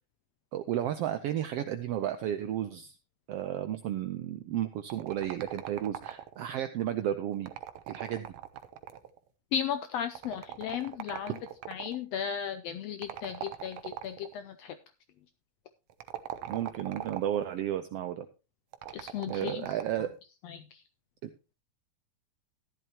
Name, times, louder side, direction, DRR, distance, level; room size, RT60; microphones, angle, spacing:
voice 1, 0.5-3.0 3.3-7.5 7.9-8.3 16.5-18.3 19.3-20.1, right 11 dB, 90° right, 9 dB, 1.3 m, -33 dB
sound 1, 4.9-6.5 7.3-9.2 10.1-12.0 13.0-14.3 15.9-17.5 18.7-20.1, right 11 dB, 70° right, 1.6 m, -41 dB
voice 2, 9.5-11.4 11.7-14.7 18.9-19.7 20.4-20.8, left 8 dB, 80° left, 9 dB, 1.5 m, -35 dB
14.0 x 11.0 x 2.9 m, 0.29 s
omnidirectional pair, 3.6 m